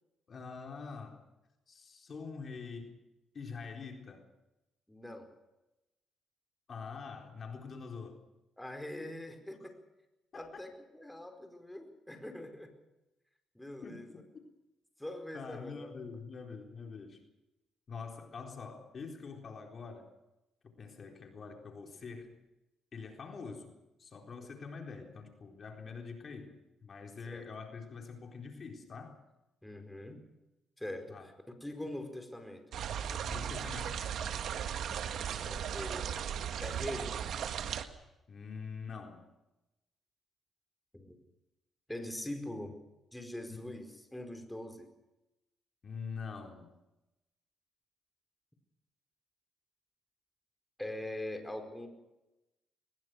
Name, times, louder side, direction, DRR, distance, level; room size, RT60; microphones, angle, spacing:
voice 1, 0.3-1.2 1.7-3.0 3.3-4.3 6.7-8.2 9.6-9.7 10.3-10.6 13.8-14.5 15.3-17.2 17.9-20.1 20.8-22.4 22.9-26.6 26.8-29.2 31.1-31.3 33.2-34.0 38.3-39.3 43.5-43.8 45.8-46.7, left 5 dB, 45° left, 3 dB, 4.0 m, -45 dB
voice 2, 4.9-5.3 8.6-9.8 10.3-12.7 13.5-14.1 15.0-15.9 27.3-27.4 29.6-30.2 30.8-31.3 31.6-32.7 35.4-36.1 36.6-37.1 40.9-41.2 41.9-42.8 43.1-44.9 50.8-51.9, left 1 dB, 5° left, 5 dB, 4.8 m, -42 dB
sound 1, 32.7-37.8, right 8 dB, 70° right, 1.8 m, -37 dB
22.0 x 21.0 x 6.4 m, 0.96 s
cardioid pair, 90°, 0 cm